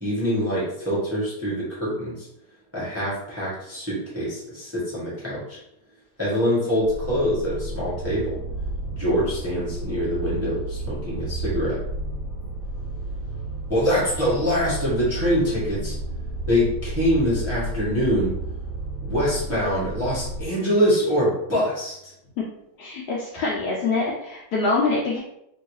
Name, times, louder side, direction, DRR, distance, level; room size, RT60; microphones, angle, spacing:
voice 1, 0.0-2.3 2.7-5.6 6.2-8.4 8.9-11.8 13.7-15.9 16.5-18.3 19.0-22.1, equal, 10° right, -9 dB, 0.8 m, -24 dB
sound 1, 6.8-20.5, right 2 dB, 50° left, 1.4 m, -32 dB
voice 2, 22.8-25.2, left 3 dB, 75° left, -4 dB, 1.0 m, -24 dB
3.0 x 2.7 x 3.0 m, 0.81 s
omnidirectional pair, 2.2 m